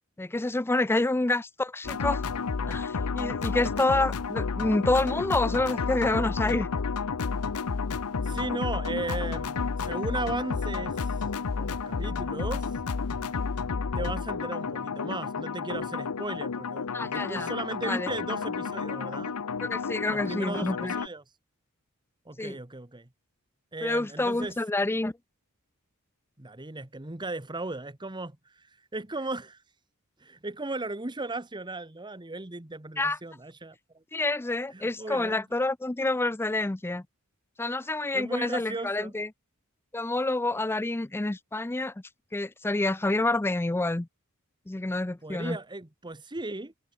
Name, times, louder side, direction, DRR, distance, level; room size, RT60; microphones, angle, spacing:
voice 1, 0.2-2.3 2.7-6.7 16.9-17.5 17.8-18.1 19.6-20.9 22.4-22.6 23.8-25.1 33.0-33.2 34.1-37.0 37.6-39.3 39.9-41.9 42.3-44.1 44.7-45.6, left 2 dB, 10° left, 0.4 m, -28 dB
sound 1, 1.8-21.1, left 5 dB, 85° left, 0.7 m, -31 dB
voice 2, 8.2-11.1 11.6-12.7 13.9-19.3 20.1-21.2 22.2-23.1 23.7-24.6 26.4-28.7 28.9-29.6 30.2-34.0 34.7-35.4 38.1-39.2 45.2-46.7, right 2 dB, 20° right, 1.3 m, -36 dB
head